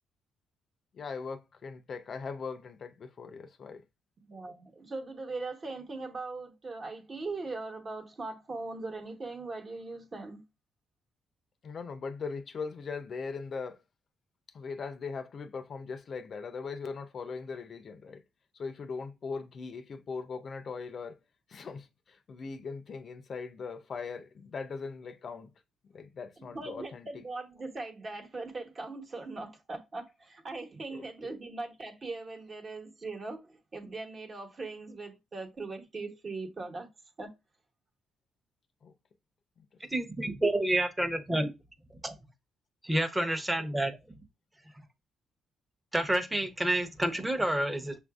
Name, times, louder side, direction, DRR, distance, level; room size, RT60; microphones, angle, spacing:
voice 1, 0.9-3.8 11.6-13.8 14.5-18.2 18.5-21.2 21.5-25.5 25.8-27.2 30.9-31.4 38.8-38.9 39.6-39.7, left 5 dB, 50° left, 0.5 m, -40 dB
voice 2, 4.2-10.4 26.5-36.9 37.2-37.3, right 3 dB, 40° right, 1.1 m, -40 dB
voice 3, 39.9-41.5 42.0-42.1 42.8-43.9 45.9-48.0, right 1 dB, 10° right, 0.8 m, -29 dB
6.7 x 2.5 x 2.3 m
cardioid pair, 90°, 0 cm